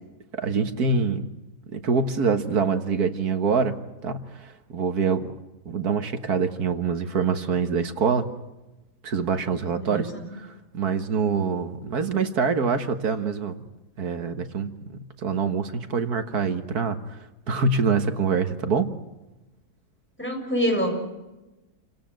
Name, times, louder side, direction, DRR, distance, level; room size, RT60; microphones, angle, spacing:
voice 1, 0.3-1.3 1.7-3.8 4.0-5.3 5.7-8.3 9.0-13.6 14.0-17.2 17.5-18.9, right 5 dB, 70° right, 8 dB, 2.0 m, -25 dB
voice 2, 9.6-10.2 20.2-21.1, equal, 5° left, 1 dB, 7.0 m, -27 dB
28.5 x 17.0 x 9.1 m, 1.0 s
omnidirectional pair, 1.7 m